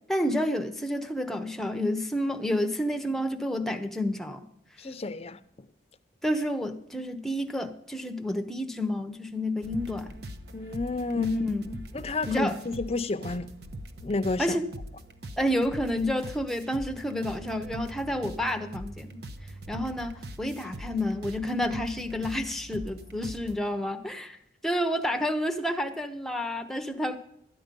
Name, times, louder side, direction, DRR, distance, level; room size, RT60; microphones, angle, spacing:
voice 1, 0.1-4.5 6.2-10.1 11.1-11.8 12.3-12.6 14.4-14.7 15.4-19.2 19.7-24.4 24.6-27.2, left 1 dB, ahead, 0.8 m, -29 dB
voice 2, 4.8-5.4 10.5-11.3 11.9-13.5 14.0-14.6, left 3 dB, 35° left, 0.6 m, -30 dB
sound 1, 9.6-23.6, right 1 dB, 60° right, 0.8 m, -42 dB
12.5 x 9.4 x 5.3 m
head